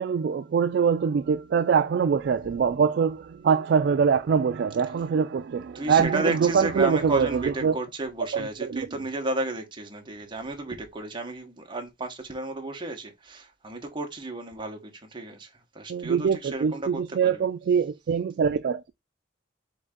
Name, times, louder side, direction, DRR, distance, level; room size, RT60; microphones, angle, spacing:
voice 1, 0.0-7.3 7.6-7.7 8.7-8.9 15.9-18.8, right 6 dB, 55° right, 0.3 m, -23 dB
voice 2, 5.7-17.5, right 2 dB, 25° right, 1.0 m, -33 dB
3.9 x 3.3 x 3.7 m
head